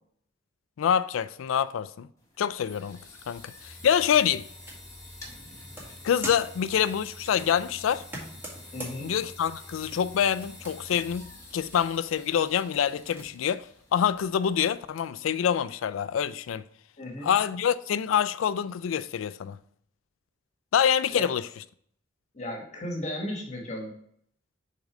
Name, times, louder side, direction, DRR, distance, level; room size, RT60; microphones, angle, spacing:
voice 1, 0.8-2.1 2.4-3.0 3.3-4.5 6.0-8.0 9.0-13.7 13.9-16.6 17.2-19.6 20.7-21.4, left 8 dB, 85° left, 0.3 m, -26 dB
sound 1, 2.2-15.0, left 1 dB, 15° left, 1.5 m, -48 dB
sound 2, 3.7-13.3, right 1 dB, 10° right, 1.9 m, -46 dB
voice 2, 8.7-9.1 17.0-17.3 21.1-21.3 22.3-23.9, left 1 dB, 35° left, 1.2 m, -35 dB
6.3 x 3.8 x 4.9 m
head